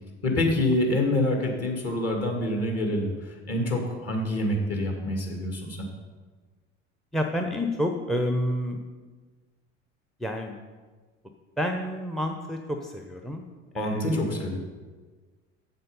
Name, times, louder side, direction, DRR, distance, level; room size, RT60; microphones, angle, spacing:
voice 1, 0.2-5.8 13.7-14.6, left 1 dB, 40° left, 1 dB, 2.4 m, -26 dB
voice 2, 7.1-8.8 10.2-10.6 11.6-13.4 13.7-14.5, equal, ahead, 3 dB, 0.6 m, -29 dB
7.7 x 7.3 x 5.4 m, 1.4 s
figure-of-eight pair, 65°, 38 cm